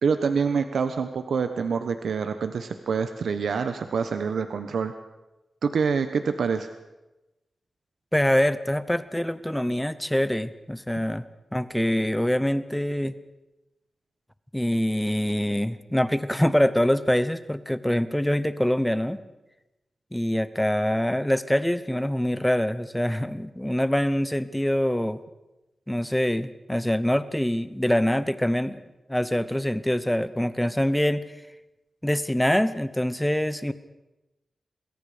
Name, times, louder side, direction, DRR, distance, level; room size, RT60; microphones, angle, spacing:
voice 1, 0.0-4.9 5.6-6.7, right 5 dB, 80° right, 8 dB, 1.1 m, -26 dB
voice 2, 8.1-11.3 11.5-13.2 14.5-19.2 20.1-25.2 25.9-28.8 29.1-31.2 32.0-33.7, equal, 5° left, 14 dB, 0.9 m, -24 dB
28.0 x 21.5 x 5.1 m, 1.0 s
wide cardioid pair, 145°, 0 cm